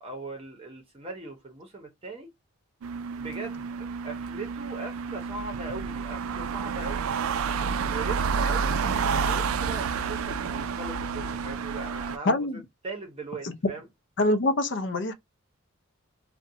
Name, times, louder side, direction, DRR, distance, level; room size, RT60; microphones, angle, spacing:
voice 1, 0.0-2.3 3.2-7.1 7.7-8.8 9.2-13.9, right 3 dB, 25° right, 0.7 m, -40 dB
sound 1, 2.8-12.2, right 5 dB, 80° right, 0.3 m, -29 dB
voice 2, 12.3-12.6 13.4-13.5 14.2-15.1, left 2 dB, 55° left, 0.6 m, -25 dB
2.5 x 2.1 x 2.7 m
head